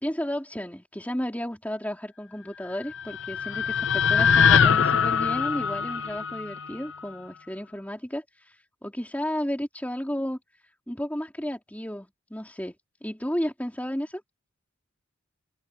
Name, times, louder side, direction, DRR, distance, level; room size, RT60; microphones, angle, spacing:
voice 1, 0.0-8.6 8.8-10.4 10.9-12.7 13.0-14.2, equal, 5° left, 3.4 m, -33 dB
sound 1, 2.7-7.0, left 6 dB, 60° left, 0.6 m, -23 dB
head